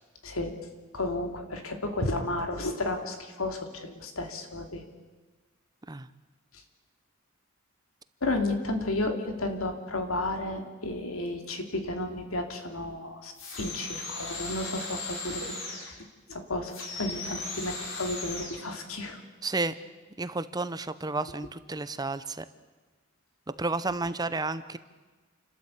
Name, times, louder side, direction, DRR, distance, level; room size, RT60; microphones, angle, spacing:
voice 1, 0.9-4.8 6.5-6.6 8.2-19.2, left 2 dB, 90° left, 5 dB, 2.8 m, -33 dB
sound 1, 13.3-15.9 16.7-18.6, left 3 dB, 65° left, 4.7 m, -37 dB
voice 2, 19.4-19.8 20.2-22.5 23.6-24.8, right 3 dB, 20° right, 13 dB, 0.7 m, -31 dB
29.0 x 13.0 x 8.3 m, 1.3 s
head